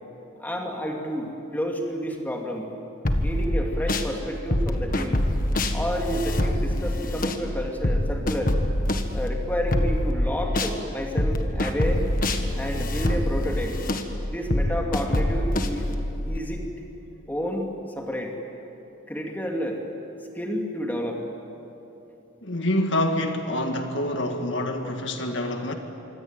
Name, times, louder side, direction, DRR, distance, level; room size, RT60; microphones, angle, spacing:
voice 1, 0.4-2.7 3.2-5.2 5.7-8.5 9.1-12.1 12.5-13.8 14.3-16.0 16.2-16.6 17.3-17.7 18.0-18.3 19.1-19.8 20.3-21.3, equal, 10° left, 1 dB, 2.7 m, -30 dB
sound 1, 3.0-4.1 4.5-10.8 11.2-16.4, left 1 dB, 40° left, 1.7 m, -25 dB
voice 2, 22.4-25.8, left 1 dB, 60° left, 5 dB, 1.9 m, -26 dB
26.0 x 25.0 x 9.1 m, 3.0 s
head